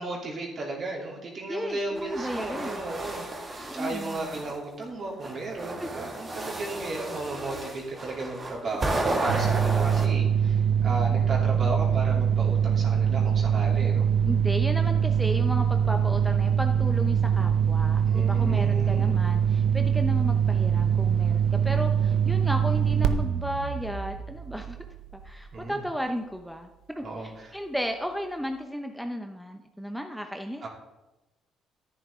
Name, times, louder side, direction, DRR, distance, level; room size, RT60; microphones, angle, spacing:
voice 1, 0.0-14.1 18.1-19.2 25.5-25.8 27.0-27.6 30.6-30.7, right 2 dB, 50° right, -2 dB, 3.1 m, -34 dB
voice 2, 1.5-2.8 3.6-4.3 5.8-5.9 14.2-24.8 25.2-30.7, equal, ahead, 5 dB, 0.8 m, -34 dB
sound 1, 2.0-4.6 5.2-10.1, right 2 dB, 35° right, 2.1 m, -33 dB
sound 2, 9.3-25.6, right 8 dB, 85° right, 0.6 m, -24 dB
11.0 x 9.2 x 3.7 m, 1.0 s
supercardioid pair, 80°, 0 cm